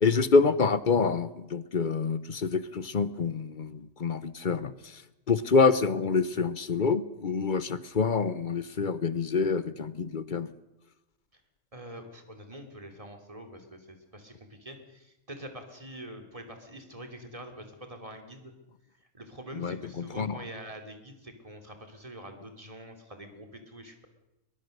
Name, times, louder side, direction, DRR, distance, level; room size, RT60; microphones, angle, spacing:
voice 1, 0.0-5.0 5.3-10.5 19.5-20.4, left 4 dB, 45° left, 15 dB, 0.9 m, -27 dB
voice 2, 11.7-18.5 19.1-24.1, right 1 dB, 25° right, 5 dB, 2.9 m, -45 dB
22.0 x 22.0 x 6.6 m, 0.97 s
omnidirectional pair, 1.3 m